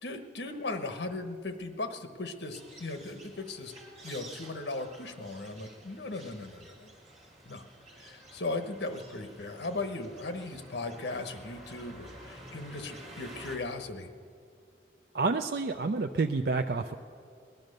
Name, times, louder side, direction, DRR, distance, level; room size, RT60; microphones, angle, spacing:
voice 1, 0.0-3.7 4.0-6.9 7.5-7.6 8.0-14.1, left 2 dB, 70° left, 7 dB, 1.1 m, -37 dB
sound 1, 2.4-13.6, right 1 dB, 40° right, 2.5 m, -50 dB
voice 2, 15.1-16.9, right 3 dB, 55° right, 6 dB, 0.4 m, -29 dB
19.0 x 10.5 x 6.5 m, 2.4 s
head